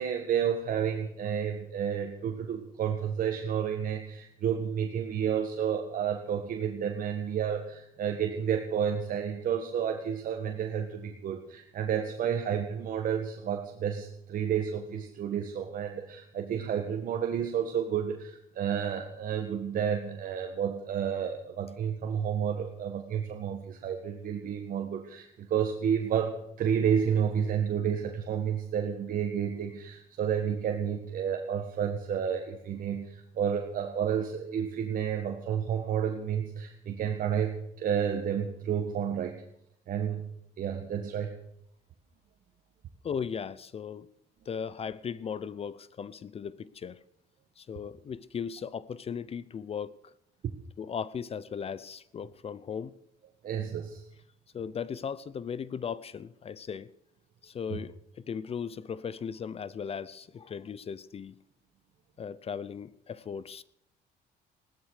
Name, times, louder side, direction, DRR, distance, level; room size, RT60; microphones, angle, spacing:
voice 1, 0.0-39.4 39.9-40.3 40.6-41.3 50.4-50.6 53.4-54.0 57.7-57.8, right 8 dB, 55° right, 1.7 m, -31 dB
voice 2, 43.0-44.1 44.5-47.0 47.6-50.1 50.8-53.0 54.5-56.9 57.4-61.4 62.2-63.6, left 7 dB, 35° left, 0.7 m, -37 dB
16.5 x 13.0 x 6.6 m
cardioid pair, 110°, 17 cm